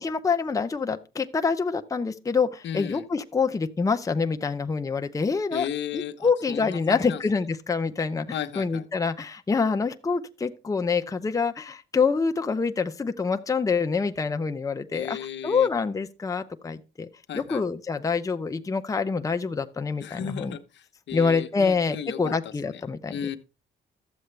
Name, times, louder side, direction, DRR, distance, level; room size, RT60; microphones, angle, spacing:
voice 1, 0.0-5.7 5.9-15.2 15.4-17.1 17.3-20.5 21.1-23.2, left 5 dB, 15° left, 0.6 m, -26 dB
voice 2, 2.6-3.0 5.5-7.2 8.3-8.8 14.9-15.7 17.3-17.6 20.0-22.8 23.1-23.4, left 9 dB, 65° left, 0.9 m, -35 dB
12.5 x 7.7 x 3.2 m
cardioid pair, 90°, 20 cm